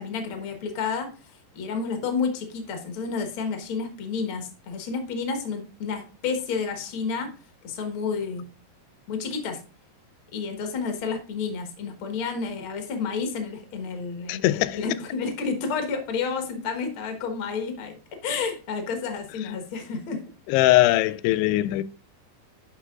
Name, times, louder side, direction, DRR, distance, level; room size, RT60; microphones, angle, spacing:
voice 1, 0.0-7.3 7.6-8.5 9.1-9.6 10.3-20.2, left 5 dB, 70° left, 1.2 m, -30 dB
voice 2, 14.3-14.8 20.5-21.8, left 16 dB, 90° left, 2.6 m, -20 dB
9.9 x 6.3 x 2.3 m
omnidirectional pair, 4.7 m